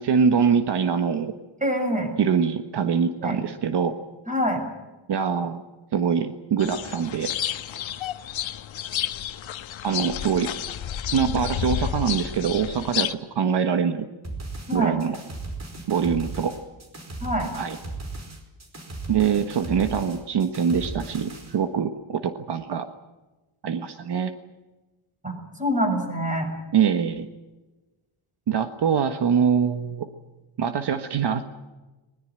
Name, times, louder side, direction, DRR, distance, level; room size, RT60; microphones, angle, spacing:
voice 1, 0.0-1.3 2.2-4.0 5.1-5.6 5.9-7.3 9.8-10.5 11.1-14.1 14.7-15.2 15.9-16.6 17.6-17.8 19.1-22.8 23.6-24.3 26.7-27.3 28.5-30.1 30.6-31.5, right 7 dB, 60° right, 8 dB, 1.5 m, -24 dB
voice 2, 1.6-2.1 3.2-3.4 4.3-4.6 14.7-15.0 17.2-17.5 25.2-26.5, equal, 15° right, 4 dB, 6.9 m, -25 dB
sound 1, 6.6-13.1, left 10 dB, 80° left, 1.3 m, -30 dB
sound 2, 14.2-21.6, right 2 dB, 35° right, 4.9 m, -36 dB
21.5 x 21.0 x 9.0 m, 1.1 s
wide cardioid pair, 160°, 46 cm